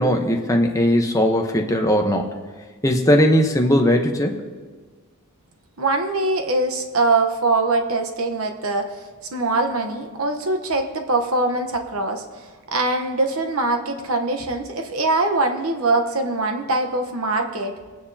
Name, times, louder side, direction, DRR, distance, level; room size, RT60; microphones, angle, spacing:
voice 1, 0.0-2.3 2.8-4.4, equal, 15° left, 2 dB, 0.9 m, -18 dB
voice 2, 5.8-8.9 9.3-12.4 12.7-17.8, right 2 dB, 75° right, 5 dB, 1.1 m, -22 dB
21.0 x 9.4 x 2.8 m, 1.4 s
head